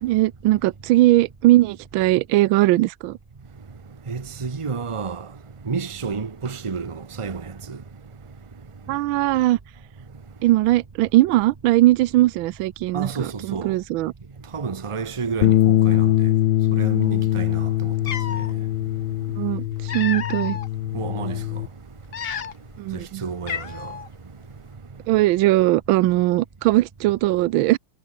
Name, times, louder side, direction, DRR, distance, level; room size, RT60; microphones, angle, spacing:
voice 1, 0.0-3.2 8.9-9.6 10.4-14.1 19.4-20.6 22.8-23.2 25.1-27.8, right 17 dB, 80° right, 1.4 m, -19 dB
voice 2, 4.1-5.3 5.7-7.4 7.7-7.8 12.9-13.7 14.5-16.2 16.7-17.9 20.9-21.4 22.9-23.9, right 5 dB, 25° right, 0.6 m, -30 dB
Bass guitar, 15.4-21.7, left 14 dB, 75° left, 1.5 m, -22 dB
Cat, 17.5-17.6 18.0-18.5 19.5-20.7 21.2-21.4 22.0-22.8 23.0-23.1 23.5-24.1, left 7 dB, 50° left, 0.7 m, -31 dB
omnidirectional pair, 2.2 m